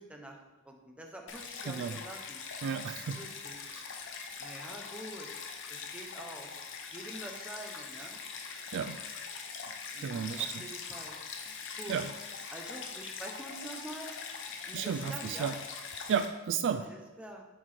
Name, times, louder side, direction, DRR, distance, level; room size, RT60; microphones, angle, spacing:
voice 1, 0.0-2.4 3.1-3.6 4.4-5.3 5.7-6.5 6.9-8.2 9.9-11.2 11.7-12.0 12.5-14.1 14.7-15.5 16.8-17.5, right 1 dB, 5° right, 1 dB, 0.8 m, -46 dB
Stream, 1.3-16.3, left 5 dB, 60° left, 0.8 m, -43 dB
voice 2, 1.7-2.0 2.6-3.2 3.7-3.9 8.7-9.0 10.0-10.5 11.9-12.1 14.7-15.6 16.1-16.9, right 7 dB, 55° right, 9 dB, 0.3 m, -33 dB
7.3 x 4.5 x 4.3 m, 1.1 s
head